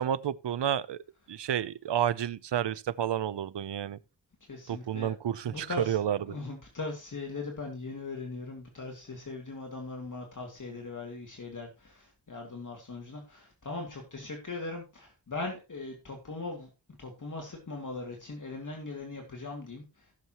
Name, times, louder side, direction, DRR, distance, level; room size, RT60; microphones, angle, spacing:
voice 1, 0.0-4.0 4.7-6.2, right 10 dB, 75° right, 0.7 m, -30 dB
voice 2, 4.5-5.1 5.5-6.0 6.3-16.7 17.0-20.1, left 3 dB, 45° left, 2.6 m, -39 dB
16.0 x 7.1 x 3.0 m
wide cardioid pair, 105°, 42 cm